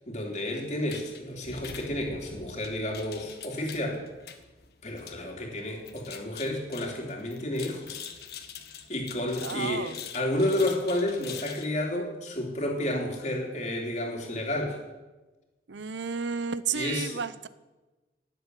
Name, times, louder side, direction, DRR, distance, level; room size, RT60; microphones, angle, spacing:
voice 1, 0.1-4.0 4.8-8.0 8.9-14.8 16.7-17.2, left 1 dB, 40° left, 0 dB, 3.1 m, -31 dB
sound 1, 0.9-11.7, left 7 dB, 60° left, 1.4 m, -44 dB
voice 2, 9.4-10.0 15.7-17.5, right 6 dB, 85° right, 15 dB, 0.7 m, -32 dB
19.0 x 7.8 x 8.2 m, 1.1 s
head